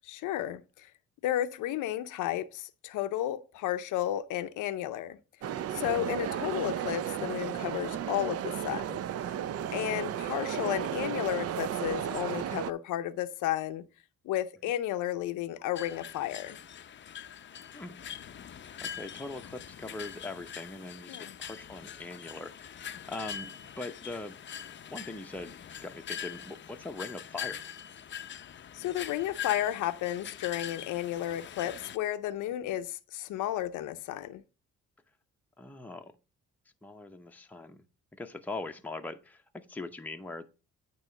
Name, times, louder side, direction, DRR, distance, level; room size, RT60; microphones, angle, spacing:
voice 1, 0.1-0.9 1.2-5.2 5.7-9.0 9.7-13.8 14.3-16.6 21.1-21.3 28.7-34.4, left 12 dB, 85° left, 0.6 m, -33 dB
sound 1, 5.4-12.7, right 10 dB, 55° right, 0.5 m, -34 dB
sound 2, 15.8-32.0, left 9 dB, 40° left, 0.6 m, -43 dB
voice 2, 18.4-23.5 23.8-24.4 24.9-25.5 25.8-27.7 32.6-32.7 35.6-36.1 36.8-37.8 38.2-40.5, left 2 dB, 5° left, 0.8 m, -41 dB
9.0 x 3.1 x 6.5 m
cardioid pair, 90°, 30 cm